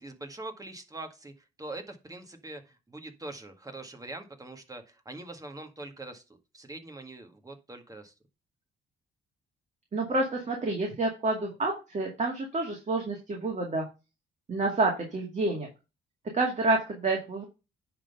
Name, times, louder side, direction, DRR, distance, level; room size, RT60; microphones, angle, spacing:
voice 1, 0.0-1.3 1.6-6.2 6.5-8.1, right 2 dB, 15° right, 6 dB, 1.8 m, -43 dB
voice 2, 9.9-13.8 14.5-15.7 16.3-17.4, right 2 dB, 35° right, 0 dB, 2.3 m, -28 dB
9.8 x 3.8 x 5.5 m, 0.28 s
cardioid pair, 90°, 20 cm